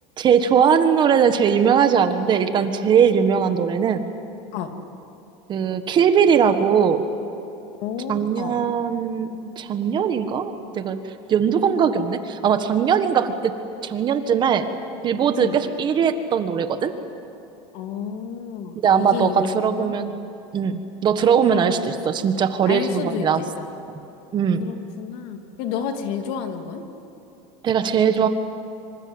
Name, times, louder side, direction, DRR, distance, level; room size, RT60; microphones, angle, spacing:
voice 1, 0.2-4.0 5.5-7.0 8.1-11.0 11.3-13.5 13.8-14.7 15.0-16.9 18.7-20.1 20.5-23.4 24.3-24.7 27.6-28.3, right 7 dB, 30° right, 9 dB, 1.5 m, -20 dB
voice 2, 7.8-8.6 15.3-15.6 17.7-20.2 21.5-21.6 22.7-23.7 24.6-26.8, left 7 dB, 60° left, 5 dB, 2.8 m, -30 dB
26.0 x 25.5 x 8.0 m, 2.9 s
supercardioid pair, 145°, 15 cm